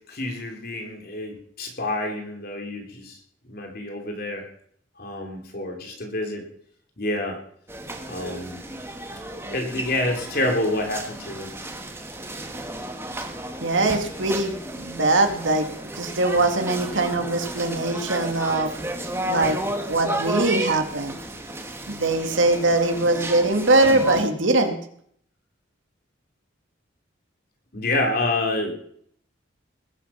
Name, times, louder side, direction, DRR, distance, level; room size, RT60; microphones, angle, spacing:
voice 1, 0.1-3.2 3.5-4.4 5.0-6.4 7.0-7.4 8.1-8.6 9.5-11.5 27.7-28.7, left 2 dB, 50° left, 2 dB, 3.2 m, -28 dB
sound 1, 7.7-24.2, right 1 dB, 15° right, 1.6 m, -33 dB
voice 2, 13.6-15.7 15.9-18.8 19.3-19.6 19.9-21.2 21.9-24.8, right 2 dB, 75° right, 5 dB, 2.3 m, -22 dB
20.5 x 10.0 x 5.8 m, 0.64 s
head